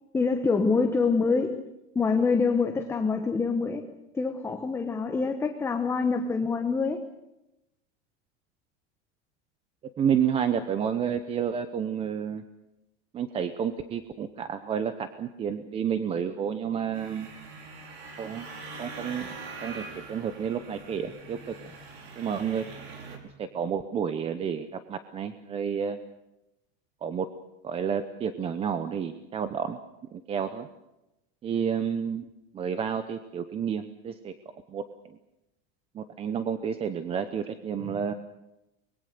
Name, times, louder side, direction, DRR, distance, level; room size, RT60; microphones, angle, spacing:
voice 1, 0.1-1.6 1.9-3.8 4.1-7.0, left 4 dB, 10° left, 5 dB, 1.0 m, -25 dB
voice 2, 10.0-12.4 13.1-17.3 18.2-18.5 18.8-19.3 19.6-21.6 22.2-22.7 23.4-26.0 27.0-27.3 27.6-29.8 30.1-30.7 31.4-32.2 32.5-34.3 34.7-35.2 35.9-38.1, right 7 dB, 15° right, 10 dB, 0.7 m, -30 dB
sound 1, 16.9-23.2, right 3 dB, 70° right, 5.2 m, -43 dB
24.5 x 21.5 x 6.6 m, 0.91 s
supercardioid pair, 165°, 33 cm